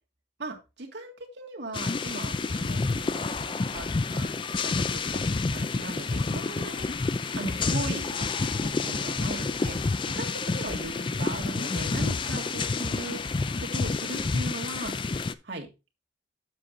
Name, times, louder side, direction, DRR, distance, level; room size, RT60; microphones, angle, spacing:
voice 1, 0.4-4.3 4.6-14.9 15.4-15.7, right 2 dB, 70° right, 1 dB, 1.9 m, -39 dB
sound 1, 1.7-15.3, left 3 dB, 25° left, 0.4 m, -29 dB
7.6 x 6.2 x 4.0 m, 0.28 s
head